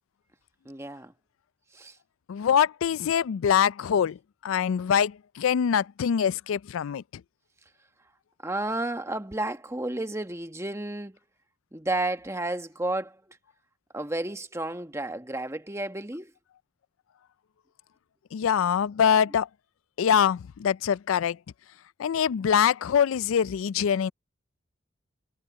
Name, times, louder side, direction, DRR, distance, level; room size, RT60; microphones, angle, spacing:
voice 1, 0.6-1.1 1.7-2.0 8.4-11.2 11.7-13.4 13.9-16.3, right 2 dB, 15° right, 1.2 m, -32 dB
voice 2, 2.3-7.0 18.3-19.5 20.0-21.4 22.0-24.1, left 8 dB, 90° left, 0.4 m, -24 dB
head